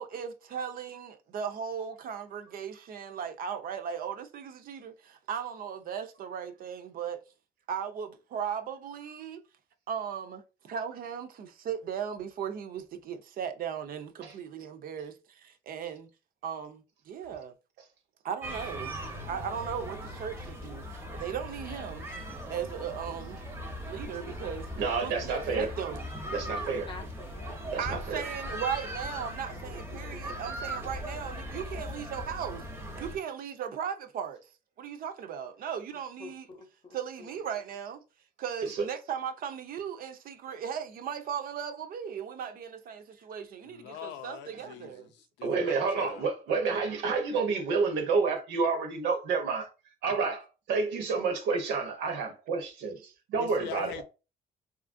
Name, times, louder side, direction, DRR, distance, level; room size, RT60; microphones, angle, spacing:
voice 1, 0.0-7.2 7.7-9.4 9.9-16.1 16.4-17.5 18.2-19.0 19.3-22.1 22.5-23.4 23.8-24.7 25.0-26.0 27.8-32.6 33.0-34.4 34.8-36.5 36.9-38.0 38.4-45.1, right 8 dB, 55° right, 0.4 m, -37 dB
sound 1, 18.4-33.2, equal, 15° right, 0.6 m, -39 dB
voice 2, 24.8-25.7 26.3-26.9 27.7-28.2 30.1-30.4 38.6-38.9 45.4-49.7 50.0-53.0 53.3-53.9, right 4 dB, 85° right, 0.8 m, -29 dB
voice 3, 26.5-27.6 36.2-37.3, left 4 dB, 25° left, 0.6 m, -47 dB
voice 4, 43.6-46.3 53.4-54.0, left 10 dB, 80° left, 0.5 m, -43 dB
2.8 x 2.5 x 2.5 m
cardioid pair, 115°, 18 cm